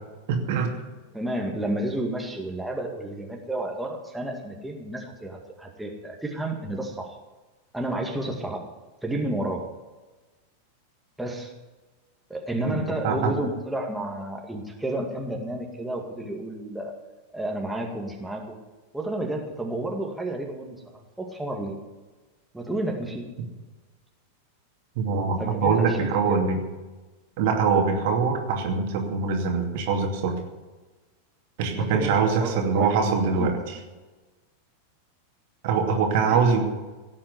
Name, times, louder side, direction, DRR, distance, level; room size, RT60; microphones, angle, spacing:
voice 1, 0.3-0.7 12.6-13.3 25.0-26.6 27.4-30.3 31.6-33.8 35.6-36.6, right 5 dB, 50° right, 2 dB, 2.6 m, -23 dB
voice 2, 1.1-7.2 7.7-8.6 9.0-9.7 11.2-11.5 12.3-16.9 17.3-18.6 18.9-21.8 22.5-23.3 25.4-26.5 31.7-33.5 36.1-36.4, right 1 dB, 5° right, 0 dB, 2.2 m, -31 dB
17.0 x 8.7 x 8.2 m, 1.2 s
figure-of-eight pair, 90°, 0 cm